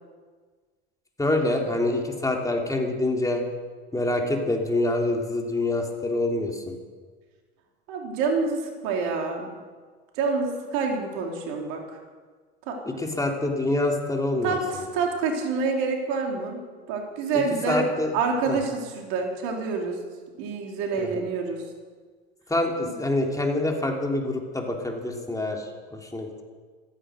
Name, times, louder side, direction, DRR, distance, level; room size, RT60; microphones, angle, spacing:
voice 1, 1.2-3.4 3.9-6.7 12.9-14.6 17.7-18.1 18.5-18.6 21.0-21.1 22.5-25.7 25.9-26.4, left 2 dB, 10° left, 1 dB, 3.1 m, -26 dB
voice 2, 7.9-9.5 10.2-11.8 12.7-12.8 14.4-16.6 16.9-17.9 18.1-20.0 20.4-21.6 22.9-23.0, right 4 dB, 65° right, 1 dB, 3.4 m, -27 dB
15.0 x 14.5 x 6.4 m, 1.5 s
hypercardioid pair, 80°, 32 cm